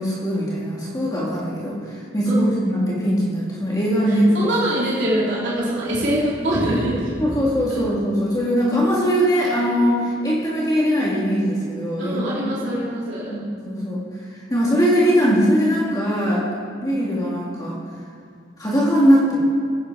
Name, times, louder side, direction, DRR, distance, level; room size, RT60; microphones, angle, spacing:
voice 1, 0.0-4.5 7.2-12.6 13.3-14.0 14.5-16.4 16.8-17.8 18.6-19.4, equal, 20° left, -5 dB, 2.0 m, -21 dB
voice 2, 2.3-2.6 4.1-7.1 12.0-13.3, right 1 dB, 70° right, -8 dB, 3.1 m, -24 dB
16.0 x 8.4 x 4.7 m, 2.3 s
head